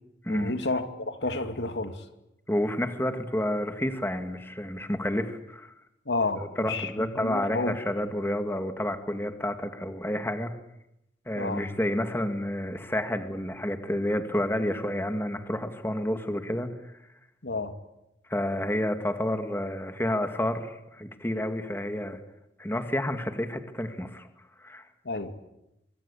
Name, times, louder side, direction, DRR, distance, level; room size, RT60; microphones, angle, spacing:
voice 1, 0.3-2.0 6.1-7.8 11.3-11.7 17.4-17.8 25.0-25.4, left 2 dB, 85° left, 2.6 m, -31 dB
voice 2, 2.5-5.7 6.4-10.5 11.3-16.7 18.3-22.2 22.6-24.3 24.6-24.8, left 1 dB, 15° left, 2.1 m, -30 dB
25.5 x 25.0 x 8.7 m
head